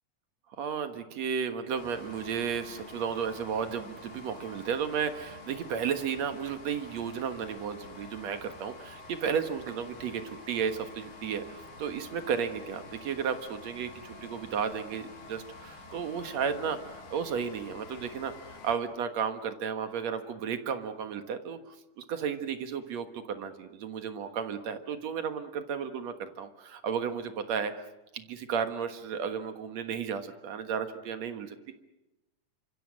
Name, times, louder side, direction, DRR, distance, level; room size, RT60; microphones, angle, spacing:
voice 1, 0.6-27.9 28.1-31.6, right 7 dB, 65° right, 8 dB, 2.6 m, -33 dB
sound 1, 1.8-18.8, left 3 dB, 80° left, 4.2 m, -48 dB
28.0 x 26.0 x 6.4 m, 0.97 s
omnidirectional pair, 3.5 m